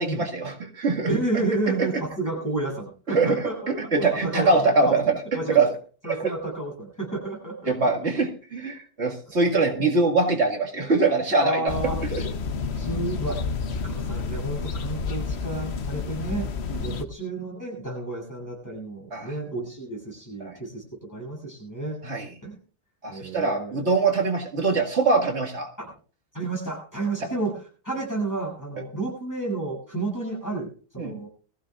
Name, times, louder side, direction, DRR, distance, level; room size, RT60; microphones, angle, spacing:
voice 1, 0.0-1.1 1.8-2.0 3.1-5.2 5.5-5.7 6.0-6.3 7.7-11.7 12.1-12.2 16.7-17.0 19.1-19.3 20.4-20.5 22.0-22.3 23.0-25.7 31.0-31.2, right 3 dB, 70° right, 1 dB, 2.3 m, -23 dB
voice 2, 1.1-3.7 4.0-4.5 4.8-5.0 5.3-5.6 6.0-7.9 11.4-12.0 12.8-13.5 13.8-16.5 16.8-22.0 22.4-22.6 23.1-23.8 25.8-25.9 26.3-31.3, right 2 dB, 15° left, -2 dB, 7.7 m, -31 dB
sound 1, 11.7-17.0, left 5 dB, 65° left, 1.2 m, -30 dB
21.5 x 15.5 x 2.4 m, 0.38 s
omnidirectional pair, 1.2 m